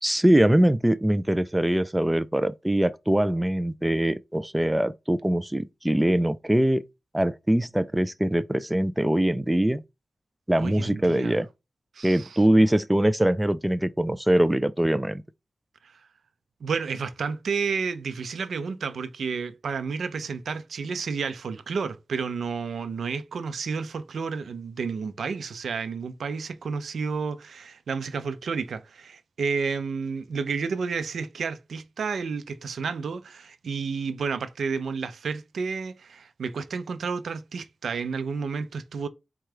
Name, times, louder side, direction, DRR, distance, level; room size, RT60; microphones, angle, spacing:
voice 1, 0.0-6.8 7.1-9.8 10.5-11.5 12.0-15.2, right 1 dB, 10° right, 0.3 m, -22 dB
voice 2, 10.6-11.4 11.9-12.3 15.8-16.0 16.6-39.1, right 5 dB, 85° right, 0.5 m, -31 dB
4.4 x 2.4 x 4.8 m
cardioid pair, 75°, 0 cm